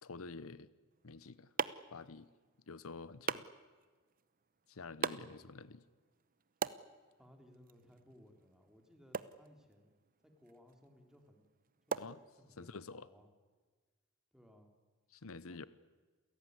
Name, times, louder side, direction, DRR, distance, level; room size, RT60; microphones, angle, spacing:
voice 1, 0.0-0.7 1.0-1.5 1.9-2.3 2.7-3.4 4.7-5.8 12.0-12.2 12.6-13.1 15.1-15.7, left 4 dB, 85° left, 17 dB, 0.9 m, -48 dB
sound 1, 0.9-12.8, right 5 dB, 45° right, 0.8 m, -45 dB
voice 2, 5.2-5.5 7.2-10.0 10.2-11.5 11.9-12.0 12.4-13.3 14.3-14.7 15.5-15.7, equal, 5° right, 4 dB, 3.5 m, -62 dB
28.5 x 17.0 x 9.7 m, 1.4 s
head